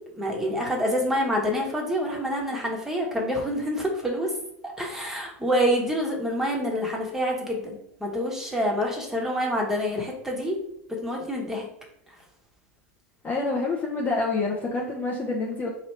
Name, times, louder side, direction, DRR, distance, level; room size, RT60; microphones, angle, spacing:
voice 1, 0.1-4.3 4.6-10.6 10.9-11.7, equal, 5° right, -1 dB, 1.2 m, -27 dB
voice 2, 13.2-15.7, left 3 dB, 25° left, -2 dB, 0.7 m, -27 dB
3.0 x 2.7 x 4.4 m, 0.76 s
hypercardioid pair, 90°, 7 cm